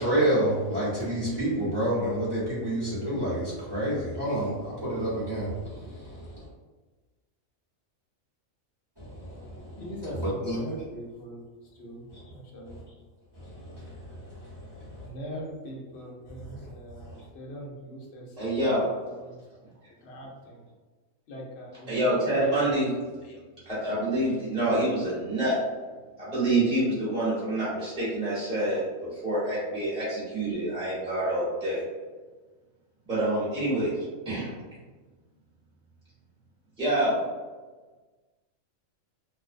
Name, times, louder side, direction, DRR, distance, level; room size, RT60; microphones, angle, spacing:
voice 1, 0.0-6.4 9.0-9.8 10.1-10.6 13.5-13.9 14.6-14.9, right 1 dB, 25° right, -11 dB, 0.7 m, -29 dB
voice 2, 9.8-11.4 11.8-12.8 15.0-19.6 19.9-20.6 21.3-22.0 22.4-22.6 23.2-23.4, equal, 60° left, -2 dB, 0.8 m, -42 dB
voice 3, 18.4-18.9 21.9-22.9 23.6-25.6 26.2-31.8 33.1-33.9 34.2-34.5 36.8-37.3, right 1 dB, 5° right, -11 dB, 1.0 m, -27 dB
2.5 x 2.1 x 2.5 m, 1.3 s
omnidirectional pair, 1.4 m